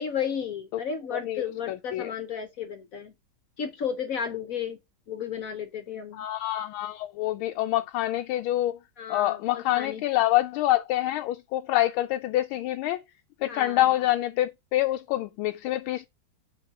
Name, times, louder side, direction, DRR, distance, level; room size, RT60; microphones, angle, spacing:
voice 1, 0.0-3.1 3.6-4.8 5.1-6.3 9.0-10.0 13.5-13.9, left 7 dB, 55° left, 1.0 m, -33 dB
voice 2, 1.1-1.4 1.7-2.1 6.1-8.8 9.1-13.0 13.4-16.1, left 15 dB, 85° left, 1.4 m, -26 dB
5.0 x 3.6 x 5.4 m
omnidirectional pair, 2.2 m